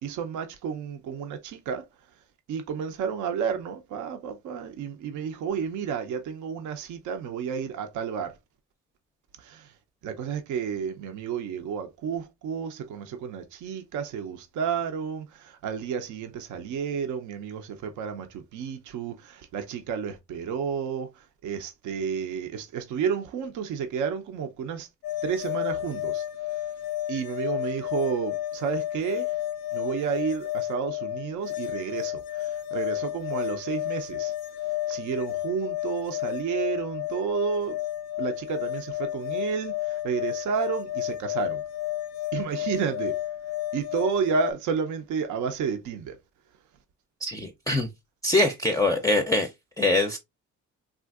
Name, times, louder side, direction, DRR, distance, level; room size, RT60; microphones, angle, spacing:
voice 1, 0.0-1.8 2.5-8.4 9.4-9.7 10.0-24.9 25.2-26.6 27.1-29.4 29.7-34.3 34.6-37.8 38.2-41.6 42.3-43.2 43.7-46.2, right 7 dB, 75° right, 0.6 m, -31 dB
sound 1, 25.0-44.5, left 14 dB, 85° left, 0.5 m, -32 dB
voice 2, 47.2-47.9 48.2-49.5 49.8-50.2, left 2 dB, 10° left, 0.4 m, -23 dB
3.5 x 2.4 x 2.3 m
cardioid pair, 90°, 30 cm